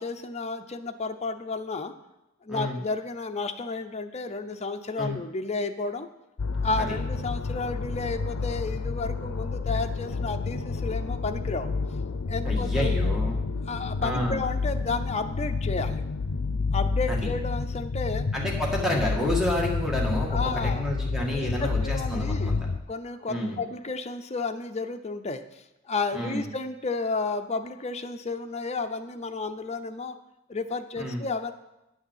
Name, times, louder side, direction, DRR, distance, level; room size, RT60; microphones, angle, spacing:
voice 1, 0.0-1.9 2.4-6.1 6.6-11.7 12.3-12.9 13.7-16.0 16.7-18.3 20.3-20.9 21.3-22.5 22.9-30.2 30.5-31.5, left 3 dB, 35° left, 7 dB, 0.7 m, -32 dB
sound 1, 6.4-22.8, left 4 dB, 75° left, 0.5 m, -29 dB
voice 2, 12.4-13.4 14.0-14.4 17.1-17.3 18.3-22.7 23.3-23.6 26.1-26.5 31.0-31.2, left 1 dB, ahead, -2 dB, 1.9 m, -29 dB
10.5 x 6.3 x 7.4 m, 0.93 s
head